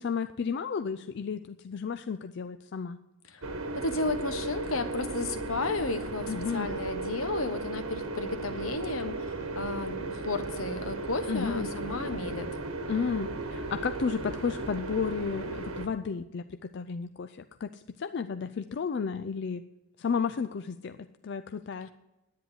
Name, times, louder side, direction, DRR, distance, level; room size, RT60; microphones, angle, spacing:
voice 1, 0.0-3.0 6.3-6.7 11.3-11.7 12.9-19.6 20.0-21.9, left 6 dB, 55° left, 10 dB, 0.4 m, -33 dB
sound 1, 3.4-15.9, right 2 dB, 90° right, 1.4 m, -36 dB
voice 2, 3.7-12.5, left 2 dB, 75° left, 9 dB, 1.2 m, -33 dB
10.5 x 9.3 x 8.0 m, 1.0 s
head